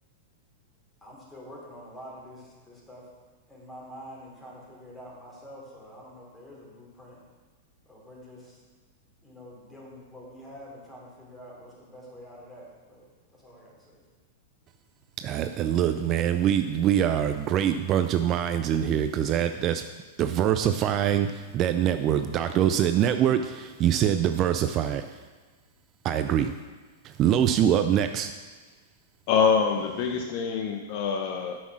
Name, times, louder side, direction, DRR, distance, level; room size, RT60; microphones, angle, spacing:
voice 1, 1.0-3.1 3.5-7.2 7.8-8.6 9.2-14.1, equal, 10° left, -5 dB, 3.1 m, -47 dB
voice 2, 15.2-19.8 20.2-25.2 26.0-26.5 27.0-28.3, right 10 dB, 35° right, 9 dB, 0.4 m, -24 dB
voice 3, 29.3-31.6, left 6 dB, 50° left, 5 dB, 0.7 m, -25 dB
7.8 x 6.2 x 6.2 m, 1.3 s
hypercardioid pair, 135°, 0 cm